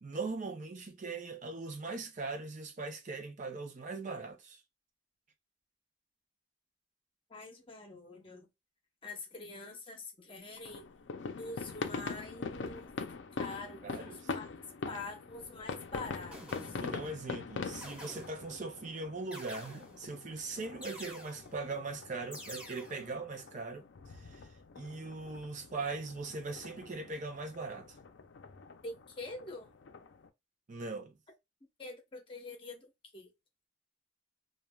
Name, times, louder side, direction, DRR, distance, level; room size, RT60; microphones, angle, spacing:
voice 1, 0.0-4.6 13.8-14.2 16.8-23.8 24.1-24.5 24.8-28.0 30.7-31.2, right 3 dB, 40° right, 0.5 m, -40 dB
voice 2, 7.3-8.5 9.0-10.9 11.4-12.9 13.3-14.5 14.9-16.8 28.8-29.7 31.8-33.3, left 2 dB, 30° left, 0.8 m, -45 dB
sound 1, 10.6-30.3, left 4 dB, 75° left, 0.5 m, -44 dB
sound 2, 15.3-15.5 16.3-17.1 17.8-18.6 19.3-20.1 20.8-21.6 22.3-23.1, equal, 5° right, 1.0 m, -49 dB
3.1 x 2.3 x 2.2 m
head